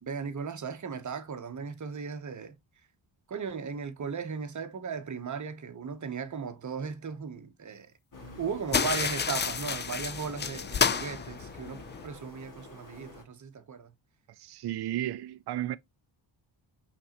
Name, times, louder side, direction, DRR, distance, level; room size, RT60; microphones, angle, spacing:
voice 1, 0.0-2.6 3.3-7.9 8.4-13.9, right 6 dB, 35° right, 0.9 m, -37 dB
sound 1, 8.1-13.2, left 2 dB, 40° left, 2.1 m, -49 dB
sound 2, 8.7-12.1, left 6 dB, 25° left, 0.3 m, -30 dB
voice 2, 14.3-15.8, right 13 dB, 55° right, 0.5 m, -33 dB
5.3 x 3.4 x 2.9 m
cardioid pair, 95°, 48 cm